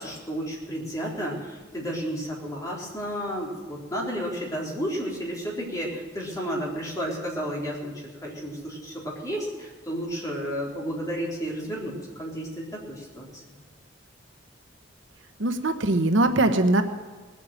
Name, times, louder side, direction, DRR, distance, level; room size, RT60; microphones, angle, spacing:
voice 1, 0.0-7.9 8.2-13.4, equal, 15° left, -3 dB, 3.7 m, -32 dB
voice 2, 15.4-16.8, right 2 dB, 70° right, 7 dB, 1.0 m, -21 dB
19.0 x 8.5 x 7.7 m, 1.4 s
head